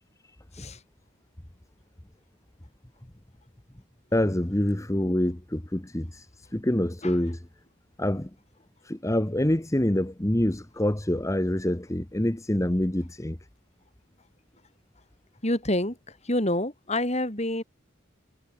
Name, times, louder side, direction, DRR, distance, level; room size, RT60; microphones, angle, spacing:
voice 1, 4.1-7.4 8.0-8.3 8.8-13.4, left 1 dB, 15° left, 1.0 m, -26 dB
voice 2, 15.4-16.0 16.2-17.6, left 1 dB, 35° left, 5.8 m, -27 dB
head